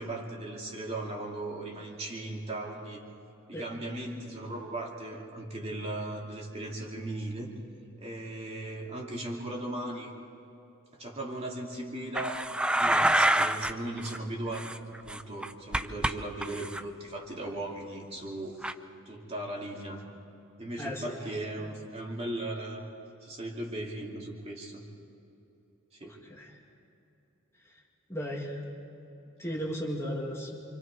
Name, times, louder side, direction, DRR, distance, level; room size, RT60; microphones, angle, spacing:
voice 1, 0.0-3.0 3.5-7.5 8.0-10.1 11.0-14.7 15.0-18.7 19.0-20.0 20.6-22.8 23.2-24.8 25.9-26.2, right 1 dB, 30° right, -2 dB, 2.7 m, -37 dB
sound 1, 12.2-13.7 14.0-14.2 14.5-16.1 16.4-16.8 18.6-18.7, right 1 dB, 5° right, 0.4 m, -27 dB
voice 2, 20.8-21.2 21.6-21.7 26.0-26.5 28.1-28.6 29.4-30.6, equal, 15° left, -2 dB, 2.1 m, -36 dB
28.5 x 25.5 x 4.8 m, 3.0 s
head